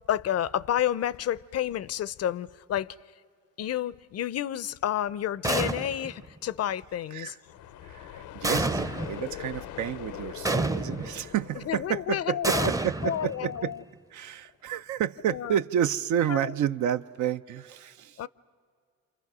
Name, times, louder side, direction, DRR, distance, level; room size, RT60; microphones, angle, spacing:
voice 1, 0.1-3.0 3.6-7.3 11.7-12.7 13.0-13.8 15.3-15.5 16.3-16.5 18.2-18.3, left 11 dB, 55° left, 0.5 m, -30 dB
sound 1, 5.4-6.2 8.4-9.2 10.4-11.2 12.4-13.7, right 2 dB, 10° right, 0.6 m, -29 dB
sound 2, 7.4-13.2, left 11 dB, 85° left, 0.7 m, -42 dB
voice 2, 7.8-13.7 14.1-18.3, right 10 dB, 75° right, 0.6 m, -30 dB
28.0 x 27.0 x 6.1 m
cardioid pair, 90°, 30 cm